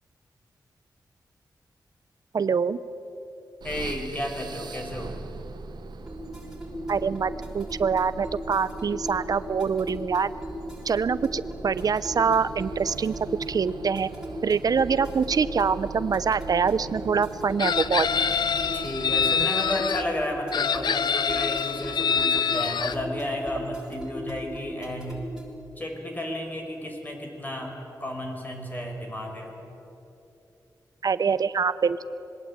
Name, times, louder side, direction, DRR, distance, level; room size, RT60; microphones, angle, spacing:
voice 1, 2.3-2.8 6.9-10.3 10.9-13.1 13.5-14.1 14.4-18.1 31.0-32.1, right 6 dB, 60° right, 15 dB, 0.8 m, -25 dB
voice 2, 3.6-5.1 18.7-25.3 25.8-29.5, left 1 dB, 25° left, 2 dB, 5.4 m, -32 dB
sound 1, 3.6-19.8, right 4 dB, 85° right, 1.3 m, -41 dB
sound 2, 6.1-25.6, equal, 5° right, 6.2 m, -38 dB
Chicken rooster, 17.6-20.0 20.5-22.9, left 6 dB, 85° left, 0.8 m, -25 dB
26.5 x 21.0 x 8.9 m, 2.9 s
wide cardioid pair, 90°, 7 cm